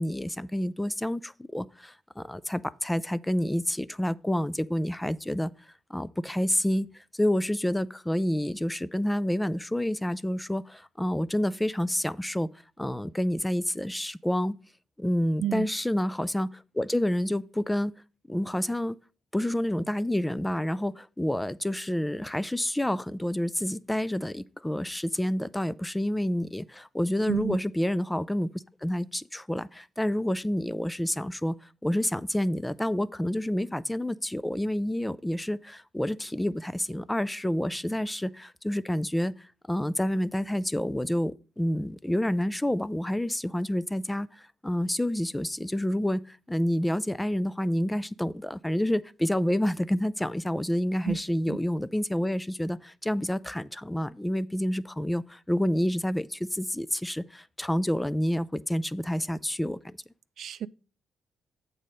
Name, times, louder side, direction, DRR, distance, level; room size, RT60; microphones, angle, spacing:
voice 1, 0.0-5.5 5.9-12.5 12.8-14.6 15.0-17.9 18.3-19.0 19.3-28.5 28.8-31.6 31.8-39.3 39.7-60.0, left 1 dB, 10° left, 0.3 m, -28 dB
voice 2, 27.3-27.6 51.1-51.2 51.5-51.6 60.4-60.7, right 10 dB, 65° right, 0.4 m, -30 dB
7.3 x 4.1 x 6.4 m
cardioid pair, 90°, 0 cm